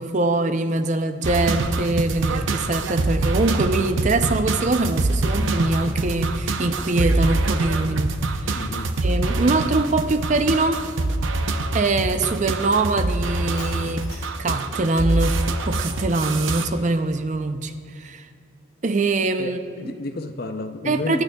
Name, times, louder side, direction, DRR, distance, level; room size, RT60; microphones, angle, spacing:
voice 1, 0.0-8.6 9.0-10.8 11.7-15.4 15.7-18.3 18.8-19.9 20.9-21.2, right 2 dB, 40° right, 0.5 m, -23 dB
sound 1, 1.2-16.7, right 2 dB, 85° right, 0.7 m, -24 dB
voice 2, 8.5-9.0 19.4-21.2, left 2 dB, 50° left, 0.6 m, -31 dB
Shatter, 13.6-14.5, left 2 dB, 20° left, 2.6 m, -41 dB
25.0 x 8.9 x 2.3 m
head